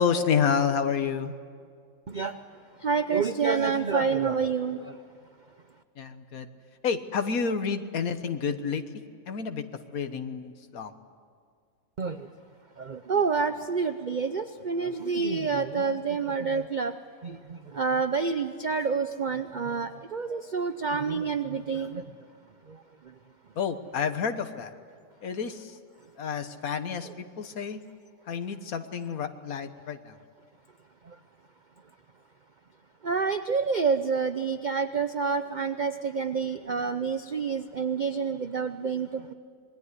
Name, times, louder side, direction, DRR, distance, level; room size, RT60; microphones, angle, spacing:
voice 1, 0.0-1.3 6.0-6.5 6.8-8.8 9.3-9.6 9.9-10.9 23.6-24.7 25.2-25.7 26.2-27.8 28.3-30.2, left 6 dB, 65° left, 9 dB, 1.7 m, -29 dB
voice 2, 2.8-4.8 12.0-12.2 12.8-16.9 17.2-17.4 17.7-22.0 33.0-39.3, right 5 dB, 45° right, 10 dB, 0.6 m, -28 dB
27.0 x 21.0 x 9.8 m, 2.2 s
omnidirectional pair, 1.6 m